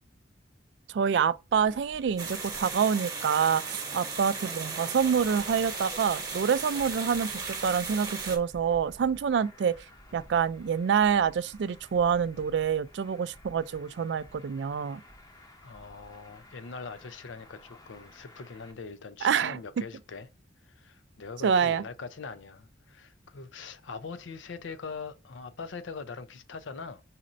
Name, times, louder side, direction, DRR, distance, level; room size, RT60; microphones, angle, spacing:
voice 1, 0.9-9.8 10.1-15.0 19.2-19.6 21.4-21.8, right 7 dB, 65° right, 0.3 m, -27 dB
Traffic noise roadway noise, 1.5-18.7, left 1 dB, 20° left, 0.7 m, -54 dB
sound 1, 2.2-8.4, right 4 dB, 20° right, 1.0 m, -36 dB
voice 2, 15.6-20.3 20.6-27.0, left 4 dB, 85° left, 0.5 m, -42 dB
4.1 x 2.5 x 4.2 m
head